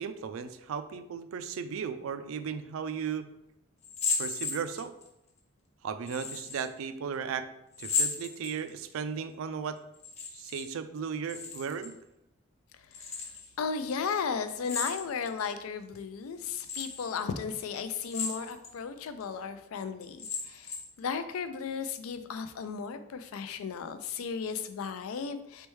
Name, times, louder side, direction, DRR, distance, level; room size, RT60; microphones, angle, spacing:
voice 1, 0.0-3.3 4.2-4.9 5.8-7.5 7.8-9.8 10.3-11.9, right 6 dB, 80° right, 11 dB, 0.3 m, -36 dB
sound 1, 3.8-5.1 6.1-6.7 7.7-8.9 9.9-10.7 10.9-11.9 12.9-13.5 14.6-15.4 15.9-16.0 16.6-17.1 18.0-18.7 19.2-19.3 20.0-21.0, left 4 dB, 30° left, 0.6 m, -34 dB
voice 2, 13.6-25.7, left 6 dB, 90° left, 11 dB, 0.4 m, -35 dB
4.2 x 3.3 x 3.1 m, 0.83 s
head